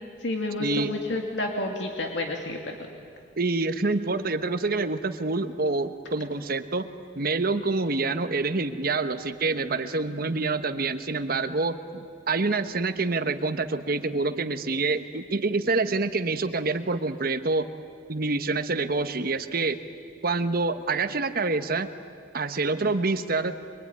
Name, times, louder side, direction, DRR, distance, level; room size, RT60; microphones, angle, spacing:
voice 1, 0.2-2.9, left 2 dB, 85° left, 2 dB, 2.5 m, -30 dB
voice 2, 3.4-6.9 7.2-17.7 18.1-19.8 20.2-21.9 22.3-23.6, right 3 dB, 55° right, 9 dB, 1.2 m, -27 dB
24.5 x 23.5 x 9.7 m, 2.3 s
head